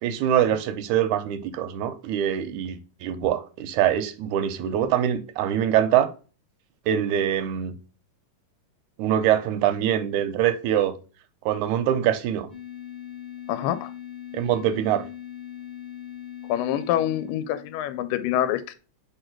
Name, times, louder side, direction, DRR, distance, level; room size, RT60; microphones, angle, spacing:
voice 1, 0.0-6.1 6.9-7.7 9.0-10.9 11.5-12.5 14.3-15.1, right 10 dB, 80° right, 1.8 m, -24 dB
sound 1, 12.5-18.0, left 10 dB, 40° left, 0.6 m, -40 dB
voice 2, 13.5-13.9 16.5-18.8, left 12 dB, 85° left, 2.2 m, -26 dB
5.0 x 4.7 x 4.4 m
omnidirectional pair, 3.9 m